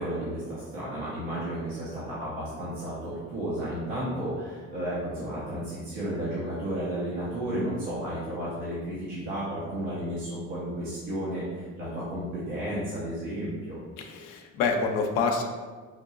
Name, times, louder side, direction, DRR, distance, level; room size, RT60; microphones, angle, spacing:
voice 1, 0.0-13.8, right 1 dB, 90° right, -10 dB, 1.1 m, -33 dB
voice 2, 14.0-15.4, left 4 dB, 75° left, 3 dB, 0.7 m, -27 dB
5.7 x 2.9 x 2.5 m, 1.4 s
hypercardioid pair, 60°, 35 cm